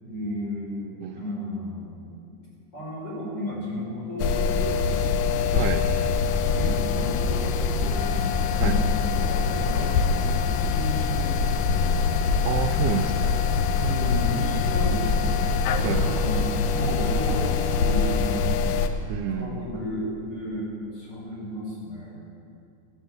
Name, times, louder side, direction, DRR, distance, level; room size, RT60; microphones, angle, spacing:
voice 1, 0.0-2.1 2.7-5.1 6.5-11.8 13.7-18.6 19.3-22.2, equal, 30° left, -5 dB, 5.0 m, -33 dB
sound 1, 4.2-18.9, left 5 dB, 90° left, 2.5 m, -24 dB
voice 2, 5.5-5.9 8.6-8.8 12.4-13.9 15.8-16.0 19.1-19.7, right 8 dB, 80° right, 6 dB, 2.0 m, -29 dB
13.0 x 12.0 x 7.9 m, 2.5 s
omnidirectional pair, 3.7 m